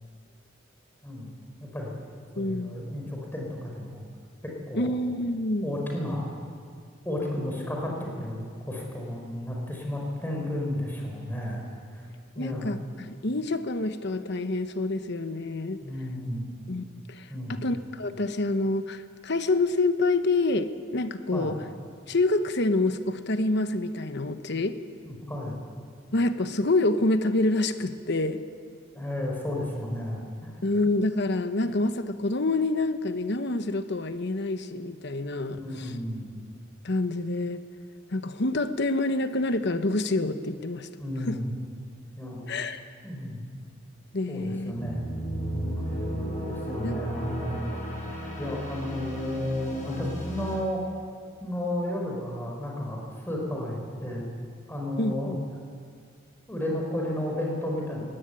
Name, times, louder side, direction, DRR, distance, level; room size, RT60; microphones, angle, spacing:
voice 1, 1.6-2.0 2.3-4.0 4.4-4.9 5.6-6.3 7.0-11.6 11.9-12.1 12.3-12.7 15.8-16.5 17.3-17.7 21.3-21.5 25.0-25.6 28.9-30.5 35.5-36.3 41.0-41.5 42.2-42.4 43.0-43.4 44.3-45.1 45.7-46.0 46.5-47.8 48.4-50.8 51.4-54.3 54.7-55.4 56.5-58.0, left 1 dB, 10° left, -1 dB, 4.6 m, -32 dB
voice 2, 2.4-2.8 4.7-5.8 12.4-15.8 16.7-21.6 22.1-24.8 26.1-28.4 30.6-35.9 36.8-37.6 38.1-40.9 41.3-41.4 42.5-42.8 44.1-44.7 46.8-47.0 55.0-55.4, left 2 dB, 55° left, 9 dB, 1.0 m, -27 dB
sound 1, 44.7-50.6, equal, 40° left, 7.9 m, -34 dB
21.5 x 17.0 x 9.9 m, 2.1 s
head